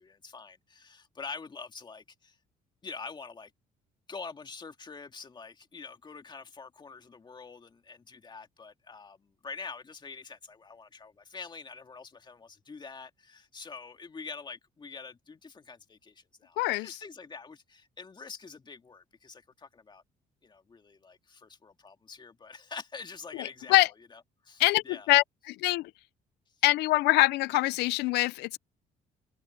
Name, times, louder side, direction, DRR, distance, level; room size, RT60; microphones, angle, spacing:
voice 1, 0.0-2.4 2.8-3.5 4.1-20.0 20.4-23.8 24.1-25.1, left 4 dB, 25° left, 2.3 m, -45 dB
voice 2, 16.6-16.9 23.3-23.9 24.6-25.9 26.6-28.6, left 19 dB, 85° left, 0.6 m, -24 dB
cardioid pair, 110°, 17 cm